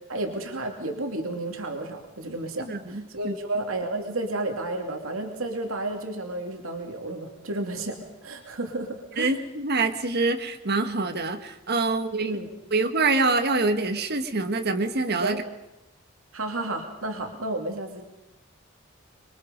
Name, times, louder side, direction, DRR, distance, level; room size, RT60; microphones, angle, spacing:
voice 1, 0.1-9.4 12.2-12.5 15.2-15.4 16.3-18.0, right 2 dB, 85° right, 3 dB, 2.7 m, -32 dB
voice 2, 2.6-3.3 9.2-12.4 12.7-15.4, right 3 dB, 55° right, 6 dB, 1.6 m, -25 dB
26.0 x 23.0 x 5.3 m, 0.94 s
head